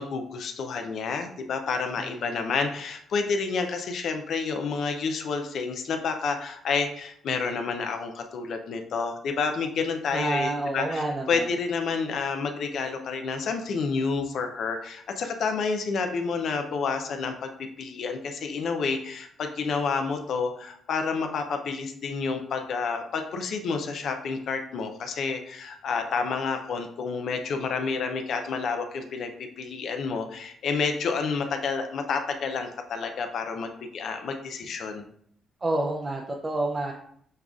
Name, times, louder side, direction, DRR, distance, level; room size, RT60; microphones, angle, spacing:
voice 1, 0.0-35.1, left 5 dB, 65° left, 6 dB, 0.6 m, -29 dB
voice 2, 2.0-2.5 10.1-11.5 35.6-36.9, right 2 dB, 25° right, 1 dB, 0.5 m, -29 dB
6.5 x 2.4 x 2.4 m, 0.66 s
cardioid pair, 90°, 0 cm